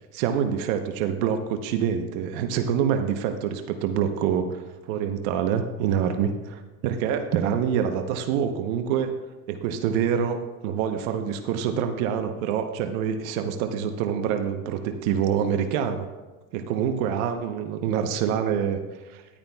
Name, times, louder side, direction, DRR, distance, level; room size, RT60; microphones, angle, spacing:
voice 1, 0.1-4.6 4.9-9.1 9.5-16.1 16.5-18.8 19.1-19.2, right 8 dB, 65° right, 6 dB, 1.0 m, -26 dB
14.0 x 11.0 x 2.3 m, 1.2 s
supercardioid pair, 130°, 45 cm